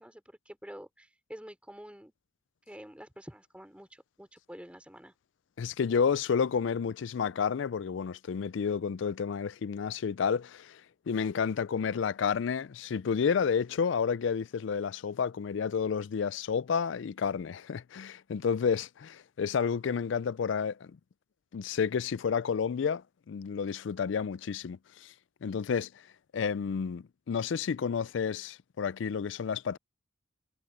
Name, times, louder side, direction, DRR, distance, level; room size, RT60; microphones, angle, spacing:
voice 1, 0.0-2.1 2.7-5.1, equal, 5° right, 4.4 m, -48 dB
voice 2, 5.6-21.0 21.5-25.1 25.4-25.9 26.3-29.8, left 6 dB, 65° left, 0.4 m, -30 dB
head